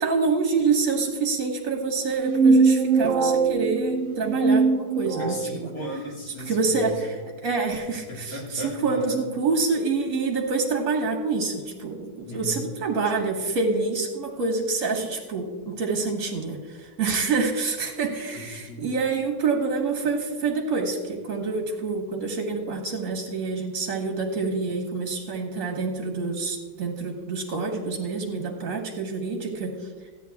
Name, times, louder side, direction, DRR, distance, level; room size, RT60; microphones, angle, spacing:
voice 1, 0.0-5.4 6.5-29.7, right 4 dB, 45° right, 1 dB, 1.7 m, -27 dB
sound 1, 2.1-5.5, right 4 dB, 85° right, 0.6 m, -21 dB
voice 2, 5.2-6.9 8.1-9.2 12.2-12.6 18.3-18.8, equal, 50° left, -2 dB, 2.7 m, -36 dB
14.0 x 9.2 x 3.5 m, 1.4 s
omnidirectional pair, 2.0 m